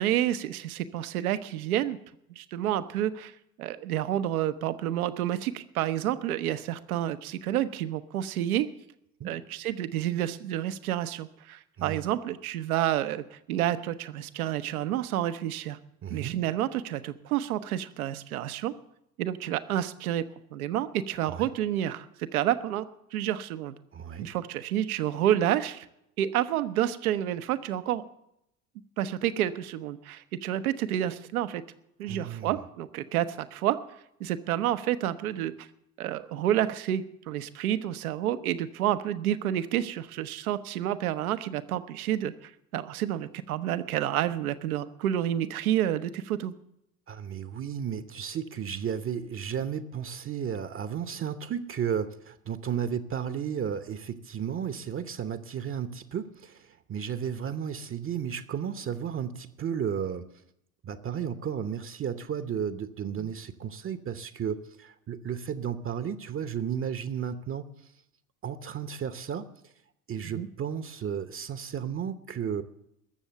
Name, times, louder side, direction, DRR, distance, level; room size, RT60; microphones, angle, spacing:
voice 1, 0.0-2.0 2.3-3.3 3.6-8.7 9.2-15.8 16.1-18.7 19.2-20.2 20.5-23.8 24.2-25.9 26.2-28.0 29.0-31.6 32.0-33.8 34.2-35.7 36.0-46.5 70.2-70.5, right 12 dB, 75° right, 11 dB, 1.0 m, -29 dB
voice 2, 16.0-16.4 21.3-21.5 23.9-24.3 32.1-32.5 47.1-60.3 60.8-67.7 68.4-69.7 70.1-72.6, right 8 dB, 30° right, 11 dB, 0.9 m, -33 dB
20.5 x 7.2 x 6.8 m, 0.79 s
hypercardioid pair, 70°, 44 cm